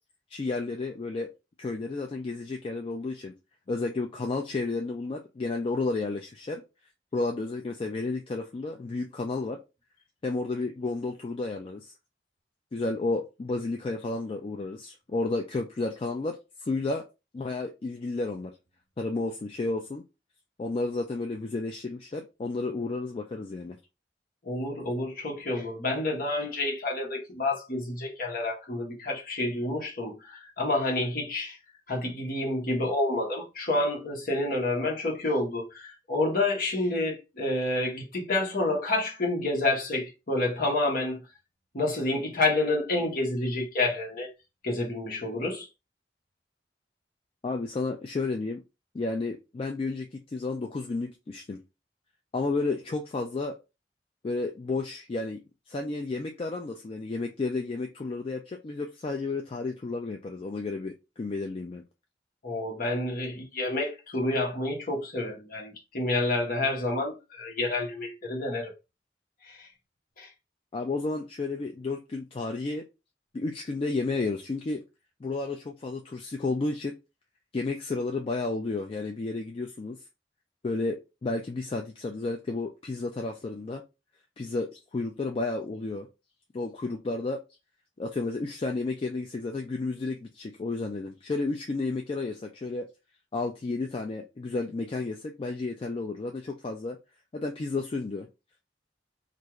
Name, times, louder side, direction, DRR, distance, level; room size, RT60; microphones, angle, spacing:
voice 1, 0.3-1.3 1.6-3.3 3.7-6.6 7.1-9.6 10.2-11.9 12.7-17.0 17.3-18.5 19.0-20.0 20.6-23.8 47.4-48.6 48.9-51.6 52.3-53.5 54.2-55.4 55.7-61.8 70.7-72.8 73.3-74.8 75.2-76.9 77.5-80.0 80.6-83.8 84.4-86.1 86.5-87.4 88.0-92.8 93.3-97.0 97.3-98.3, left 3 dB, 30° left, 0.3 m, -32 dB
voice 2, 24.4-31.6 31.9-41.2 41.7-44.3 44.6-45.7 62.4-68.7 69.5-69.7 70.2-70.3, left 2 dB, 55° left, 1.1 m, -29 dB
2.5 x 2.4 x 2.9 m
head